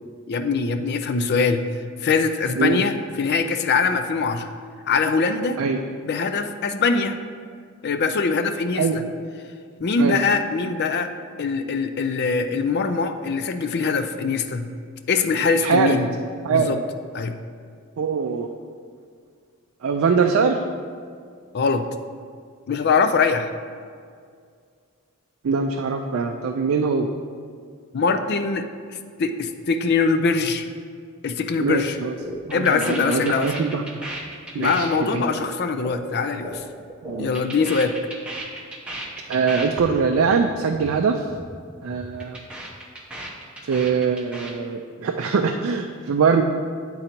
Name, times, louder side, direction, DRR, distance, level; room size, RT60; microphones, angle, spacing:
voice 1, 0.3-1.6 2.0-4.5 4.9-5.6 6.0-7.2 7.8-9.0 9.8-11.1 11.4-14.7 15.1-16.1 16.5-16.8 17.1-17.3 21.5-21.9 22.7-23.5 27.9-30.7 31.2-32.0 32.5-33.5 34.6-36.6 37.2-37.9, left 4 dB, 50° left, 9 dB, 0.4 m, -22 dB
voice 2, 15.6-16.0 16.4-16.8 18.0-18.5 19.8-20.6 25.4-27.1 31.6-32.2 32.5-33.8 34.5-35.2 37.0-37.3 39.3-41.3 41.8-42.4 43.6-46.4, right 5 dB, 60° right, 3 dB, 0.4 m, -22 dB
sound 1, 31.6-31.8 32.0-36.6 36.9-39.8 40.1-40.3 40.5-40.9 41.1-41.5 41.8-44.5, right 1 dB, 5° right, 0.8 m, -35 dB
8.6 x 3.9 x 4.4 m, 2.1 s
head